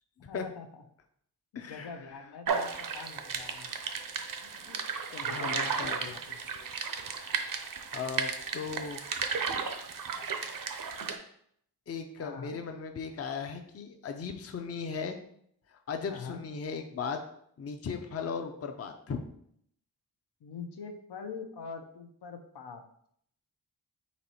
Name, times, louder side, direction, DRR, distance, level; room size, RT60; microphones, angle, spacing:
voice 1, 0.3-0.7 1.6-3.7 4.4-4.8 5.1-6.6 12.2-12.6 16.1-16.4 20.4-22.8, left 5 dB, 80° left, 5 dB, 0.6 m, -44 dB
voice 2, 1.5-1.9 5.2-6.0 7.9-9.0 11.9-15.2 15.7-17.2 17.6-19.2, left 5 dB, 40° left, 5 dB, 0.5 m, -37 dB
sound 1, 2.5-11.2, right 5 dB, 55° right, 0.6 m, -34 dB
4.1 x 3.0 x 4.3 m, 0.67 s
wide cardioid pair, 110°, 40 cm